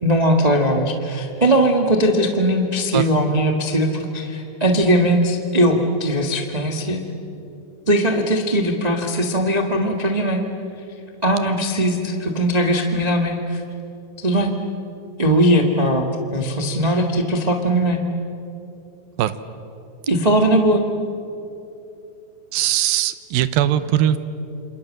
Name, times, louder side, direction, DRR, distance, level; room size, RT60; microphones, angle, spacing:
voice 1, 0.0-7.0 7.9-10.4 11.2-13.6 14.2-14.6 15.2-18.0 20.1-20.8, right 1 dB, 45° right, 3 dB, 0.5 m, -19 dB
voice 2, 22.5-24.2, right 12 dB, 80° right, 13 dB, 2.7 m, -20 dB
28.0 x 26.5 x 7.6 m, 2.9 s
omnidirectional pair, 4.2 m